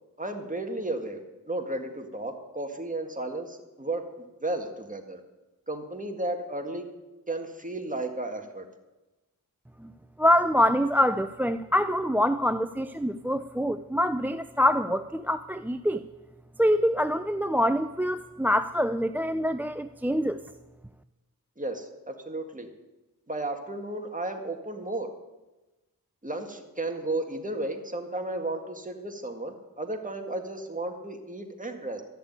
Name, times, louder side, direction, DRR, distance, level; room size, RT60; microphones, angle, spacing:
voice 1, 0.2-4.0 4.4-5.2 5.7-6.9 7.3-8.7 21.6-22.7 23.3-25.1 26.2-32.0, right 2 dB, 25° right, 4 dB, 1.9 m, -33 dB
voice 2, 10.2-16.0 16.6-20.4, equal, 5° right, 12 dB, 0.4 m, -25 dB
13.5 x 6.8 x 9.4 m, 1.1 s
wide cardioid pair, 55°, 34 cm